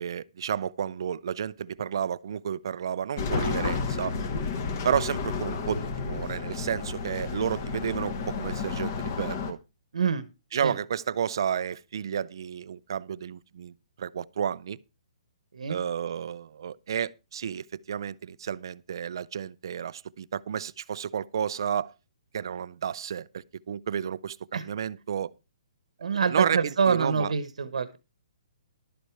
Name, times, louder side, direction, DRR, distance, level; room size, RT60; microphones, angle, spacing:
voice 1, 0.0-4.2 4.8-9.6 10.5-14.8 15.7-21.9 22.3-25.3 26.3-27.3, right 8 dB, 40° right, 0.5 m, -31 dB
sound 1, 3.2-9.5, left 5 dB, 25° left, 1.2 m, -31 dB
voice 2, 9.9-10.2 10.6-10.7 15.5-15.8 24.5-24.7 26.0-28.0, right 6 dB, 85° right, 1.2 m, -26 dB
12.0 x 8.2 x 4.6 m
hypercardioid pair, 180°, 3 cm